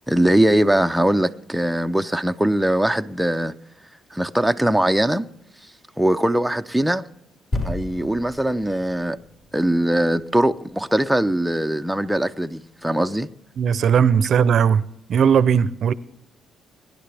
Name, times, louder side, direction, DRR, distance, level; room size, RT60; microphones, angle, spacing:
voice 1, 0.1-3.5 4.1-5.3 6.0-7.1 7.6-9.2 9.5-13.3, right 1 dB, 5° right, 0.5 m, -21 dB
sound 1, 7.5-11.1 11.7-11.8, left 2 dB, 45° left, 5.0 m, -33 dB
voice 2, 13.6-14.8 15.1-15.9, right 7 dB, 60° right, 0.6 m, -17 dB
23.0 x 10.5 x 3.4 m
cardioid pair, 90°, 0 cm